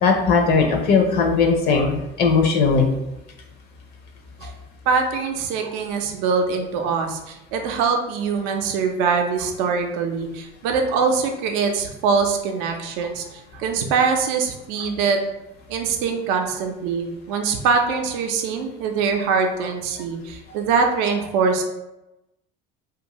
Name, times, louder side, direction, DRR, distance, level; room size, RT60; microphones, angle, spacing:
voice 1, 0.0-2.9 13.8-13.9, left 4 dB, 60° left, 3 dB, 0.5 m, -18 dB
voice 2, 4.9-13.2 13.5-15.2 15.7-21.6, right 5 dB, 80° right, 4 dB, 0.4 m, -23 dB
2.6 x 2.4 x 2.9 m, 0.93 s
cardioid pair, 120°, 19 cm